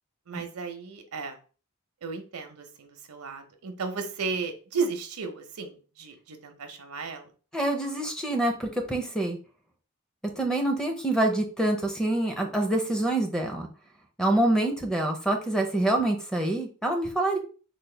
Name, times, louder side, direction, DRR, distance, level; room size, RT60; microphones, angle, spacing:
voice 1, 0.3-1.3 2.0-7.3, right 4 dB, 80° right, 6 dB, 0.7 m, -34 dB
voice 2, 7.5-9.4 10.4-13.7 14.2-17.4, right 1 dB, 5° left, 4 dB, 0.5 m, -26 dB
3.9 x 2.1 x 3.2 m, 0.37 s
head